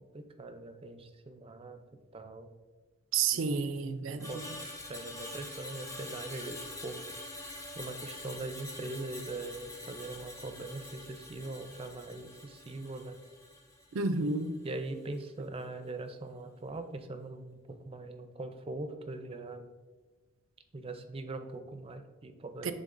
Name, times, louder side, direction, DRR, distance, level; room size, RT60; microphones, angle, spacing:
voice 1, 0.1-1.8 2.1-2.5 3.3-3.5 4.3-4.4 4.9-7.0 7.7-13.2 14.6-19.7 20.7-22.7, right 2 dB, 30° right, 8 dB, 0.5 m, -41 dB
voice 2, 3.1-4.3 13.9-14.6 22.6-22.7, right 4 dB, 80° right, 9 dB, 0.5 m, -30 dB
Screech, 4.2-14.6 14.9-15.2, left 1 dB, 15° left, 0.8 m, -46 dB
10.5 x 3.6 x 2.5 m, 1.3 s
head